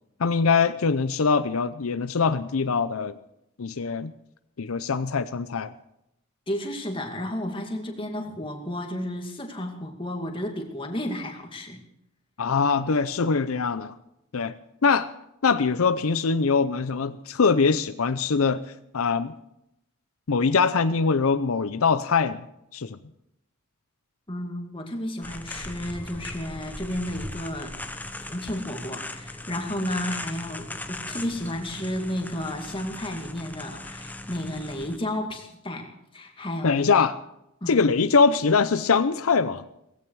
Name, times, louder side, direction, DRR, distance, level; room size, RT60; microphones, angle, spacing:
voice 1, 0.2-3.1 3.6-4.1 4.6-5.7 12.4-13.9 14.3-14.5 14.8-15.1 15.4-18.6 18.9-19.3 20.3-22.4 22.7-23.0 36.6-37.2 37.7-39.6, left 5 dB, 85° left, 0.6 m, -22 dB
voice 2, 6.5-11.8 24.3-27.8 28.3-35.9 36.1-36.8 37.6-37.7, left 1 dB, 25° left, 2.3 m, -32 dB
sound 1, 25.2-35.0, left 2 dB, 10° left, 0.9 m, -38 dB
17.5 x 16.0 x 4.8 m
head